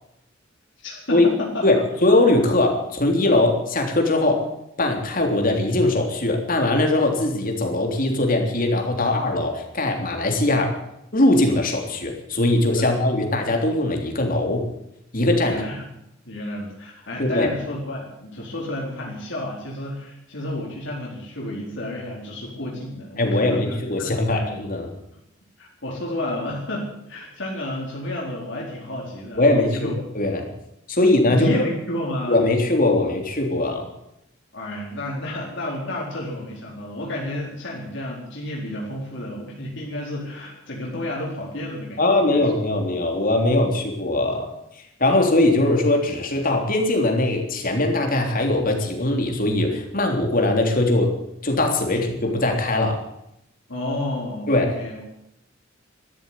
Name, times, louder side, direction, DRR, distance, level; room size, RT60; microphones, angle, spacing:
voice 1, 0.8-1.7 9.0-9.1 12.8-12.9 15.4-15.8 16.3-24.5 25.6-30.0 31.3-32.4 34.5-42.0 42.3-42.4 53.7-55.0, left 1 dB, 65° left, -3 dB, 4.2 m, -31 dB
voice 2, 1.6-4.5 4.8-10.8 11.1-14.7 15.1-15.6 17.2-17.5 23.2-24.9 29.4-30.5 30.9-31.7 32.3-33.9 42.0-51.1 51.4-53.0 54.5-54.7, left 2 dB, 45° left, 3 dB, 3.4 m, -21 dB
13.5 x 12.5 x 8.6 m, 0.83 s
head